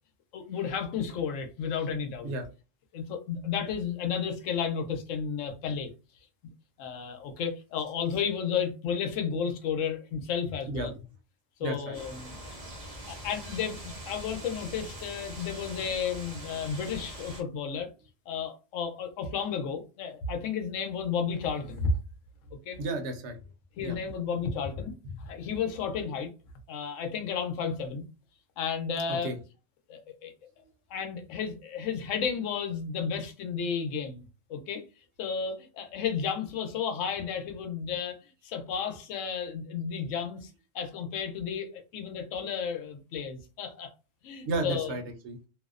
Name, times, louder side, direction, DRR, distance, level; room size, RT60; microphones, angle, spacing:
voice 1, 0.3-2.3 2.9-5.9 6.8-10.9 11.6-12.6 13.1-13.8 14.1-17.9 18.3-21.9 22.7-22.8 23.8-24.9 25.2-26.3 26.7-28.0 28.6-29.3 29.9-30.3 30.9-34.2 34.5-34.8 35.2-40.5 40.7-43.9 44.2-44.9, left 6 dB, 80° left, 0.9 m, -32 dB
voice 2, 10.7-11.0 11.6-12.0 22.8-23.4 23.8-24.0 29.1-29.4 44.5-45.4, right 2 dB, 70° right, 0.8 m, -33 dB
sound 1, 11.9-17.4, right 1 dB, 40° right, 0.6 m, -43 dB
2.6 x 2.0 x 2.4 m
omnidirectional pair, 1.3 m